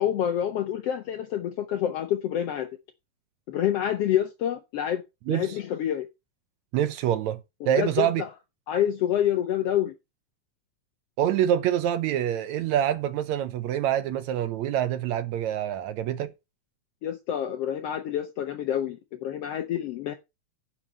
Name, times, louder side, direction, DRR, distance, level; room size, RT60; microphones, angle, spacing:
voice 1, 0.0-2.7 3.5-5.0 5.3-6.1 7.8-8.3 8.7-9.9 17.0-20.1, left 10 dB, 80° left, 1.4 m, -27 dB
voice 2, 5.3-5.6 6.7-7.4 7.7-8.2 11.2-16.3, right 11 dB, 75° right, 1.7 m, -26 dB
11.0 x 4.3 x 7.4 m
omnidirectional pair, 4.0 m